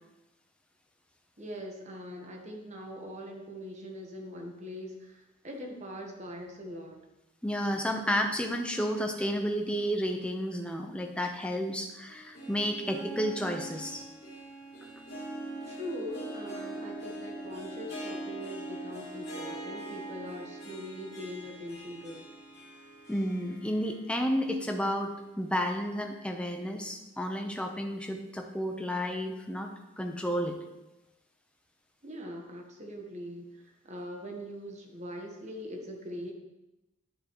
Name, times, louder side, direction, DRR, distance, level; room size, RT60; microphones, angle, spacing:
voice 1, 1.4-7.0 15.7-22.3 32.0-36.3, equal, 35° right, 1 dB, 1.2 m, -42 dB
voice 2, 7.4-14.0 23.1-30.6, equal, 5° left, 3 dB, 0.7 m, -31 dB
Harp, 12.1-24.2 24.6-24.7 25.5-25.6, right 1 dB, 50° left, 2.9 m, -42 dB
10.0 x 6.8 x 3.0 m, 0.98 s
head